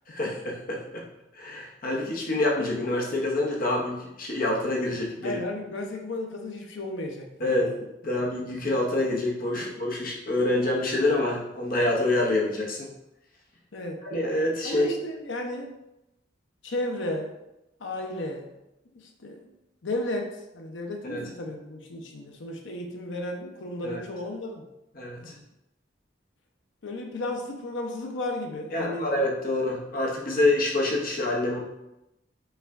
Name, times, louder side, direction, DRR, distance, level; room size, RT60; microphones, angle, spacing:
voice 1, 0.1-1.0 1.4-5.4 7.4-7.7 8.0-12.8 14.0-14.9 21.0-21.2 23.8-24.0 25.0-25.2 28.7-31.6, left 2 dB, 50° left, -2 dB, 1.0 m, -26 dB
voice 2, 5.2-7.7 9.5-9.6 13.7-14.0 14.6-15.7 16.6-17.3 17.8-18.5 19.0-19.5 19.8-24.7 25.2-25.4 26.8-29.1, left 1 dB, 75° left, 3 dB, 0.7 m, -34 dB
5.5 x 2.4 x 3.5 m, 0.90 s
head